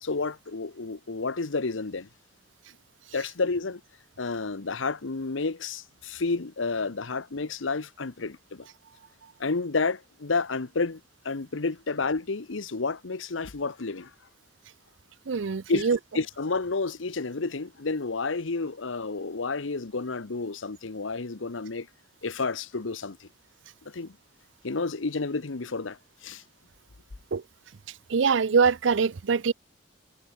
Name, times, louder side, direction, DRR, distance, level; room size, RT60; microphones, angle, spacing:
voice 1, 0.0-2.1 3.1-3.8 4.2-8.7 9.4-14.1 15.7-15.9 16.1-21.9 22.2-23.3 23.8-24.2 24.6-26.4, left 3 dB, 80° left, 1.0 m, -30 dB
voice 2, 15.3-16.0 27.3-27.4 28.1-29.5, right 5 dB, 70° right, 0.5 m, -23 dB
head